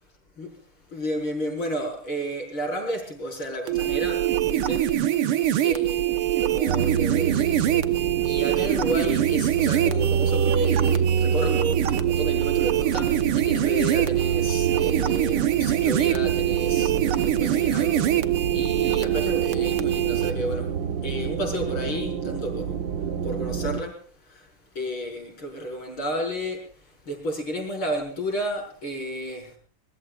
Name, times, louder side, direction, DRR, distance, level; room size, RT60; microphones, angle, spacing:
voice 1, 0.9-4.2 4.5-4.8 5.6-20.7 21.0-22.8 23.2-24.0 24.3-24.5 24.7-26.6 27.1-29.5, equal, 70° left, 2 dB, 6.4 m, -32 dB
sound 1, 3.7-20.3, right 12 dB, 80° right, 1.9 m, -24 dB
sound 2, 6.7-23.8, right 7 dB, 60° right, 1.8 m, -28 dB
25.0 x 21.5 x 2.5 m, 0.43 s
omnidirectional pair, 2.4 m